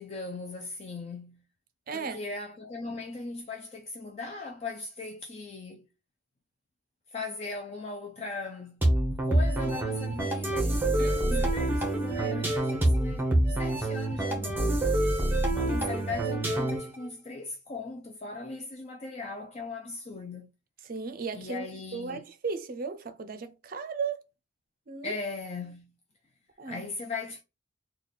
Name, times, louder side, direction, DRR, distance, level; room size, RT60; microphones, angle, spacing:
voice 1, 0.0-1.4 1.9-5.9 7.1-8.8 9.2-15.0 15.5-20.5 21.3-22.2 25.0-25.9 26.6-27.4, left 3 dB, 35° left, 0.4 m, -39 dB
voice 2, 1.9-2.2 11.0-11.5 20.8-24.2 24.9-25.1 26.6-26.8, right 4 dB, 45° right, 0.5 m, -36 dB
sound 1, 8.8-17.0, right 1 dB, 10° right, 0.8 m, -26 dB
3.2 x 2.3 x 3.9 m
head